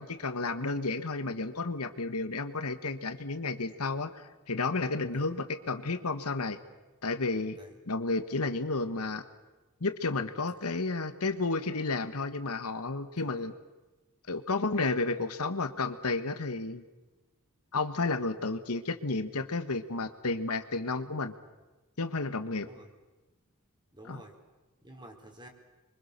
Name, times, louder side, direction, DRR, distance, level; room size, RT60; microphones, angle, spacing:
voice 1, 0.0-6.6 7.0-7.6 7.9-9.2 9.8-13.5 14.3-16.8 17.7-21.3 22.0-22.7 24.1-24.2, left 3 dB, 90° left, 10 dB, 1.4 m, -32 dB
voice 2, 13.1-13.5 22.5-22.9 23.9-24.4 24.8-25.5, right 1 dB, 20° right, 3 dB, 3.8 m, -50 dB
27.0 x 24.0 x 6.7 m, 1.1 s
head